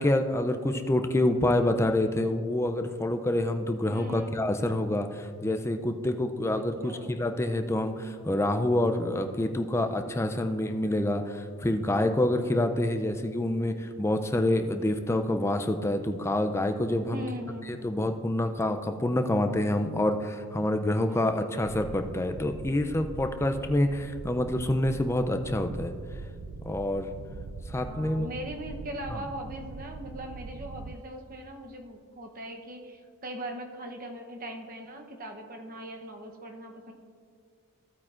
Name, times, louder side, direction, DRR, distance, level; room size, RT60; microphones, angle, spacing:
voice 1, 0.0-17.2 17.8-25.9 26.6-27.1 27.7-28.3 29.1-29.2, left 1 dB, 10° left, 6 dB, 0.4 m, -27 dB
voice 2, 3.9-4.4 6.8-7.1 17.1-17.9 21.1-21.4 27.8-36.9, equal, 40° right, 3 dB, 0.8 m, -40 dB
sound 1, 21.6-31.0, right 4 dB, 70° right, 0.4 m, -42 dB
14.5 x 8.8 x 2.5 m, 2.2 s
head